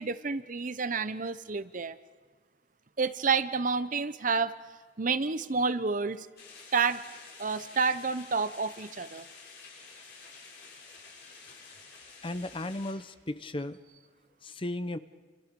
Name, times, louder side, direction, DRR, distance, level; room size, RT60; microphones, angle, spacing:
voice 1, 0.0-2.0 3.0-4.5 5.0-6.3 6.7-7.0 7.4-9.3, right 5 dB, 40° right, 12 dB, 0.8 m, -29 dB
sound 1, 6.4-12.9, left 4 dB, 60° left, 7.4 m, -50 dB
voice 2, 12.2-13.8 14.4-15.0, left 1 dB, 25° left, 12 dB, 0.8 m, -35 dB
29.5 x 28.0 x 5.3 m, 1.5 s
head